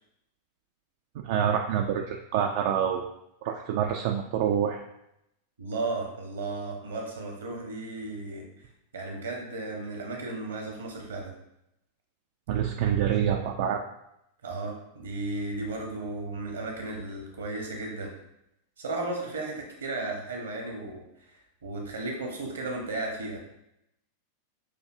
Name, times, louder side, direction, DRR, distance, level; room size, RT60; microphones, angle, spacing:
voice 1, 1.2-3.1 3.4-4.8 12.5-13.8, right 8 dB, 50° right, 3 dB, 0.3 m, -26 dB
voice 2, 5.6-8.5 8.9-11.3 14.4-18.1 18.8-21.0 21.6-23.4, right 2 dB, 70° right, 1 dB, 1.0 m, -34 dB
6.4 x 2.7 x 2.5 m, 0.82 s
figure-of-eight pair, 90°, 0 cm